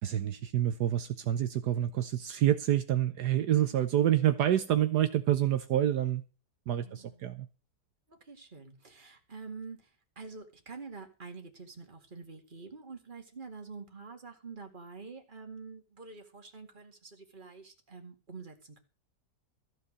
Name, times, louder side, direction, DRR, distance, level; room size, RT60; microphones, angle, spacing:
voice 1, 0.0-6.2 6.7-7.5, right 11 dB, 75° right, 1.4 m, -27 dB
voice 2, 6.8-7.3 8.1-9.9 10.2-18.8, right 4 dB, 30° right, 2.3 m, -47 dB
14.0 x 8.2 x 6.5 m
omnidirectional pair, 1.8 m